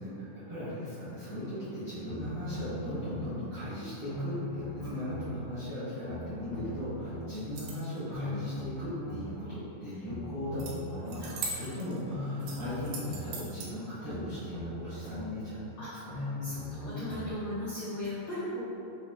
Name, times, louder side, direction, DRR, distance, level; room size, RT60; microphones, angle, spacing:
voice 1, 0.0-16.3, left 1 dB, 70° right, -14 dB, 1.3 m, -38 dB
sound 1, 2.1-3.3 4.1-5.3 6.0-7.3 8.1-9.3 10.0-11.3 12.1-13.3 14.0-15.3 16.1-17.3 18.0-18.1, left 2 dB, 70° left, 1.5 m, -39 dB
sound 2, 7.4-8.0 10.6-10.7 11.1-12.0 12.4-13.7, right 3 dB, 90° right, 2.2 m, -40 dB
voice 2, 11.2-11.6 15.8-15.9 16.4-18.6, left 1 dB, 85° left, -12 dB, 1.3 m, -38 dB
5.9 x 2.3 x 2.3 m, 2.7 s
omnidirectional pair, 3.8 m